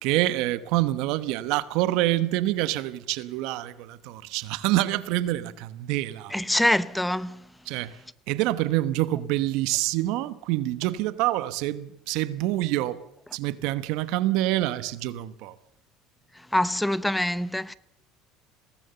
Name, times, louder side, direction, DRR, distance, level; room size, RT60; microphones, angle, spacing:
voice 1, 0.0-6.3 7.7-8.0 8.3-13.0 13.3-15.5, right 16 dB, 70° right, 1.0 m, -26 dB
voice 2, 6.3-7.4 16.5-17.7, left 1 dB, 5° left, 0.7 m, -24 dB
21.5 x 18.0 x 6.8 m
hypercardioid pair, 85°, 0 cm